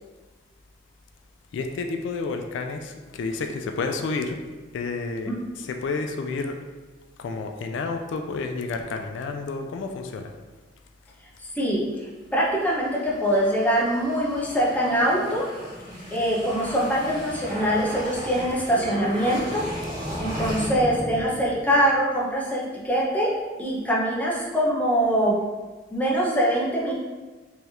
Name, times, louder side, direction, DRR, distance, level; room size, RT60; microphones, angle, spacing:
voice 1, 1.5-4.4 4.7-5.3 5.6-6.6 7.2-10.3, left 4 dB, 80° left, 5 dB, 0.3 m, -30 dB
voice 2, 11.5-11.8 12.3-15.5 16.1-19.6 20.2-23.3 23.6-25.4 25.9-26.9, equal, 10° left, -5 dB, 0.7 m, -23 dB
sound 1, 12.6-21.9, equal, 50° right, 1.3 m, -36 dB
3.5 x 3.2 x 2.8 m, 1.3 s
head